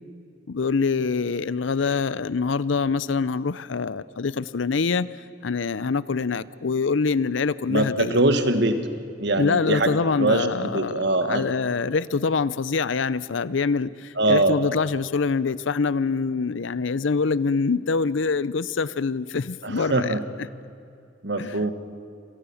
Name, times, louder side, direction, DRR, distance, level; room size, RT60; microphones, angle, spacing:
voice 1, 0.5-5.1 5.4-8.2 9.3-20.5 21.4-21.7, left 4 dB, 75° left, 0.6 m, -25 dB
voice 2, 7.7-8.8 9.2-11.4 14.2-14.6 19.6-20.2 21.2-21.7, right 2 dB, 60° right, 1.7 m, -22 dB
26.5 x 18.5 x 7.1 m
head